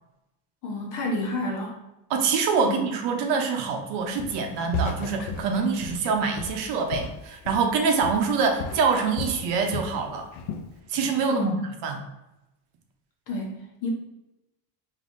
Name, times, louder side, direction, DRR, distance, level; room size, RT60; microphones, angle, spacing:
voice 1, 0.6-1.8 2.6-2.8 11.3-11.6 13.3-13.9, left 2 dB, 45° left, -1 dB, 1.0 m, -30 dB
voice 2, 2.1-10.3 10.9-11.6 11.8-12.0, right 5 dB, 65° right, 3 dB, 0.8 m, -25 dB
Walk footsteps, 4.2-4.5 4.7-7.8 8.0-8.3 8.6-10.0 10.3-10.7, left 3 dB, 80° left, 0.5 m, -34 dB
5.3 x 2.7 x 2.6 m, 0.93 s
cardioid pair, 180°, 43 cm